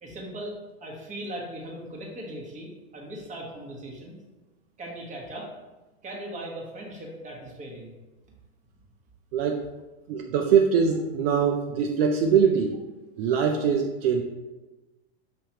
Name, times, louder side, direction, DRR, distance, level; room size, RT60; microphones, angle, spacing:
voice 1, 0.0-4.2 4.8-5.5 6.0-7.9, right 1 dB, 25° right, -2 dB, 1.3 m, -39 dB
voice 2, 9.3-9.6 10.1-12.8 13.2-14.2, right 6 dB, 65° right, 3 dB, 0.5 m, -22 dB
5.9 x 3.0 x 2.9 m, 1.1 s
hypercardioid pair, 110°, 32 cm